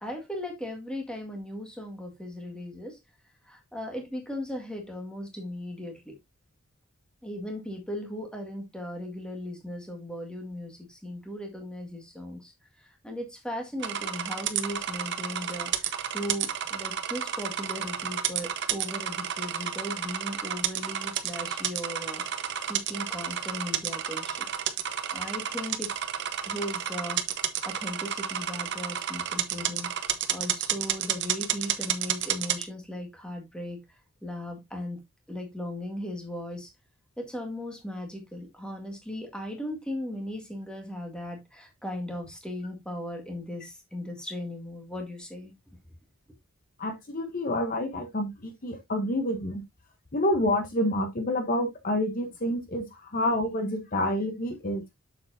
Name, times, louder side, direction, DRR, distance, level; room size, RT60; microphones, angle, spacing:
voice 1, 0.0-3.0 3.5-6.2 7.2-12.5 12.8-22.4 22.7-24.5 25.1-25.9 26.4-27.2 27.7-29.9 30.3-33.8 34.2-35.0 35.3-36.7 37.2-45.5, left 1 dB, 5° left, 1.9 m, -37 dB
sound 1, 13.8-32.6, right 9 dB, 55° right, 0.8 m, -31 dB
voice 2, 46.8-49.6 50.1-54.8, left 1 dB, 40° left, 1.1 m, -28 dB
7.5 x 7.0 x 2.7 m
head